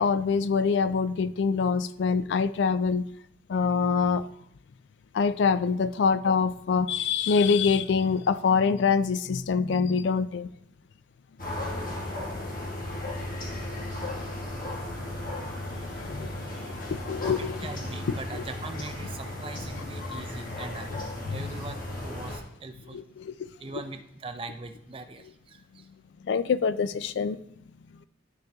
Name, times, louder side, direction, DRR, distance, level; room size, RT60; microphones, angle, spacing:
voice 1, 0.0-3.1 3.5-4.3 5.1-10.5 15.6-17.7 20.1-20.2 22.9-23.5 26.2-27.4, left 5 dB, 70° left, 15 dB, 0.3 m, -25 dB
sound 1, 11.4-22.4, left 1 dB, 45° left, 1.5 m, -35 dB
voice 2, 17.6-20.9 21.3-23.0 23.6-25.9, right 3 dB, 30° right, 7 dB, 0.5 m, -41 dB
11.0 x 6.6 x 2.3 m, 0.75 s
head